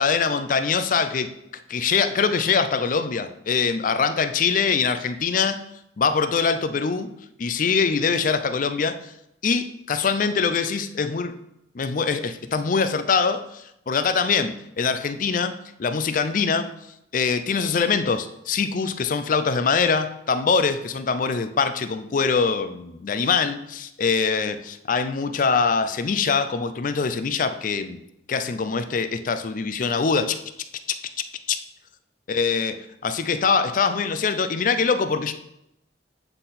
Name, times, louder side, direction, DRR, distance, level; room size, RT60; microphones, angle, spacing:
voice 1, 0.0-1.3 1.7-5.6 6.0-7.1 7.4-9.1 9.4-11.3 11.7-16.7 17.1-28.0 28.3-30.4 30.9-31.0 31.5-31.6 32.3-32.8 33.0-35.3, left 5 dB, 45° left, 10 dB, 0.4 m, -23 dB
8.1 x 3.9 x 4.1 m, 0.81 s
head